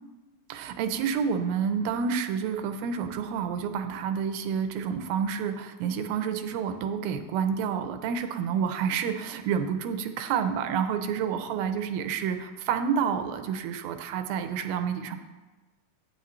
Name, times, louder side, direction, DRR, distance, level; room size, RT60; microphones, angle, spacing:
voice 1, 0.5-15.2, right 7 dB, 85° right, 8 dB, 2.5 m, -29 dB
15.0 x 8.2 x 3.2 m, 1.2 s
omnidirectional pair, 4.1 m